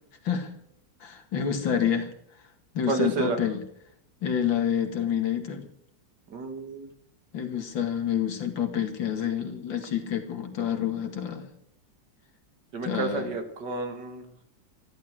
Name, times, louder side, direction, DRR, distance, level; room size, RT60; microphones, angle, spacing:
voice 1, 1.0-2.1 2.7-3.6 4.2-5.7 7.3-11.5 12.8-13.3, left 8 dB, 90° left, 6 dB, 2.7 m, -28 dB
voice 2, 2.9-3.4 6.3-6.9 12.7-14.3, right 3 dB, 65° right, 6 dB, 2.6 m, -30 dB
14.5 x 12.0 x 6.1 m, 0.72 s
omnidirectional pair, 2.0 m